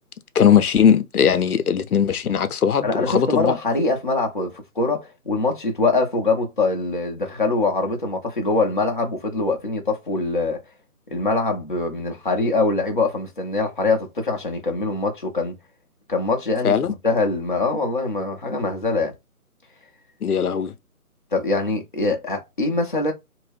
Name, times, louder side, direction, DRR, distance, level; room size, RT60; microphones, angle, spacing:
voice 1, 0.3-3.6 16.6-16.9 20.2-20.7, left 8 dB, 70° left, 0.7 m, -19 dB
voice 2, 2.8-10.6 11.1-15.6 16.1-19.1 21.3-23.1, left 3 dB, 35° left, 0.6 m, -23 dB
2.9 x 2.6 x 3.3 m
figure-of-eight pair, 160°, 46 cm